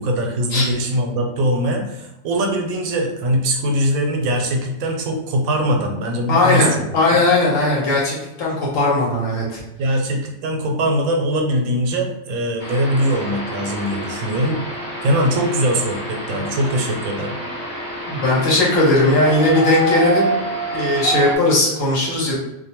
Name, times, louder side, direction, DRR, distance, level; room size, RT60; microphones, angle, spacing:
voice 1, 0.0-6.7 9.8-14.6 15.0-17.4, equal, 85° right, 2 dB, 1.0 m, -21 dB
voice 2, 6.3-9.6 17.3-17.4 18.1-20.4 20.7-22.3, left 2 dB, 75° left, -4 dB, 1.2 m, -18 dB
sound 1, 12.6-21.4, right 2 dB, 30° left, 0.4 m, -27 dB
2.5 x 2.2 x 2.9 m, 0.90 s
omnidirectional pair, 1.4 m